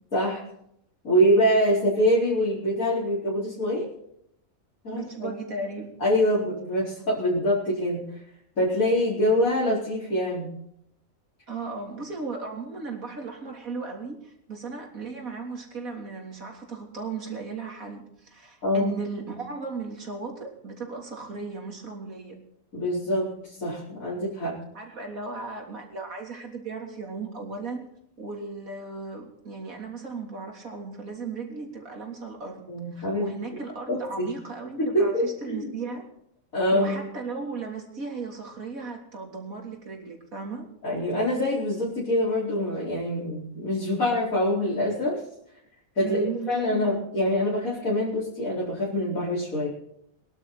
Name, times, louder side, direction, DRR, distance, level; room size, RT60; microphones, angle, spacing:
voice 1, 0.1-0.4 1.0-3.9 4.8-5.3 6.0-8.0 8.6-10.5 18.6-18.9 22.7-24.6 32.7-33.3 33.9-34.3 34.8-35.7 36.5-37.0 40.8-45.2 46.0-49.7, equal, 80° left, -8 dB, 5.2 m, -25 dB
voice 2, 4.9-6.0 11.5-22.4 24.7-27.8 28.2-32.6 32.9-36.1 36.7-40.6 46.0-47.0, right 4 dB, 80° right, 1 dB, 3.8 m, -36 dB
23.0 x 11.5 x 4.2 m, 0.74 s
omnidirectional pair, 1.4 m